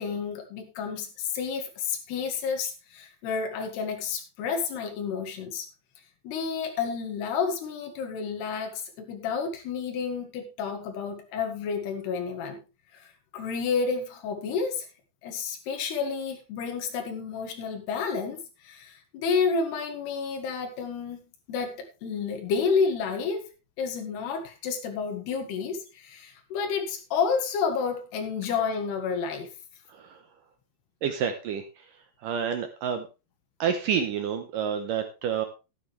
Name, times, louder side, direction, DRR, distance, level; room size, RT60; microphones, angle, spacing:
voice 1, 0.0-5.7 6.2-12.6 12.9-13.0 13.3-14.9 15.2-21.2 21.5-23.5 23.8-29.5, left 5 dB, 70° left, 4 dB, 3.9 m, -30 dB
voice 2, 31.0-31.6 32.2-33.1 33.6-35.5, right 7 dB, 75° right, 7 dB, 2.0 m, -28 dB
12.5 x 10.5 x 3.3 m, 0.29 s
omnidirectional pair, 5.0 m